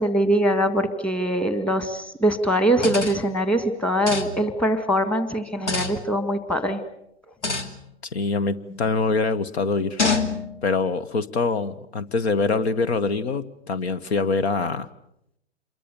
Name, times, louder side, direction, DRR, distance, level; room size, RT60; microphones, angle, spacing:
voice 1, 0.0-6.8, equal, 5° left, 10 dB, 1.9 m, -22 dB
sound 1, 2.7-3.4 4.1-4.6 5.6-6.1 7.4-7.8 8.7-9.0 10.0-10.6, left 3 dB, 80° left, 2.7 m, -27 dB
voice 2, 8.1-10.0 10.6-14.9, left 4 dB, 65° left, 14 dB, 1.4 m, -24 dB
27.0 x 23.0 x 7.0 m, 0.78 s
hypercardioid pair, 120°, 35 cm